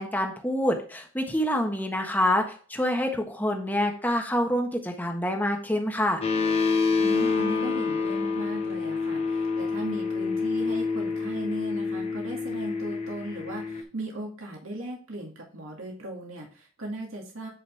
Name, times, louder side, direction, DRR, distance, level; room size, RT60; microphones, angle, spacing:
voice 1, 0.0-6.2, left 1 dB, 10° left, 3 dB, 1.3 m, -26 dB
sound 1, 6.2-13.8, left 4 dB, 30° left, 1.0 m, -27 dB
voice 2, 7.0-17.5, right 1 dB, 90° right, -1 dB, 2.3 m, -37 dB
9.7 x 5.3 x 3.5 m, 0.40 s
head